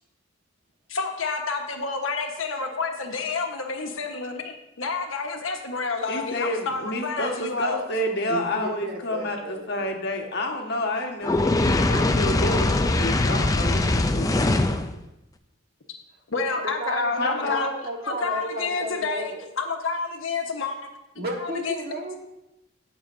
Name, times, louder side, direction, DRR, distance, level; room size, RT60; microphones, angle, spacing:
voice 1, 0.9-7.9 16.3-17.7 18.0-19.3 19.6-20.8 21.1-21.7, left 4 dB, 85° left, 3 dB, 1.3 m, -29 dB
voice 2, 6.1-11.5 11.9-14.3 17.2-17.7, left 1 dB, 55° left, 2 dB, 1.5 m, -29 dB
voice 3, 8.3-9.9 16.4-19.4 21.2-22.2, equal, 50° right, 1 dB, 1.6 m, -33 dB
Fire, 11.2-14.9, left 2 dB, 20° left, 0.5 m, -22 dB
18.0 x 6.8 x 2.7 m, 0.91 s
head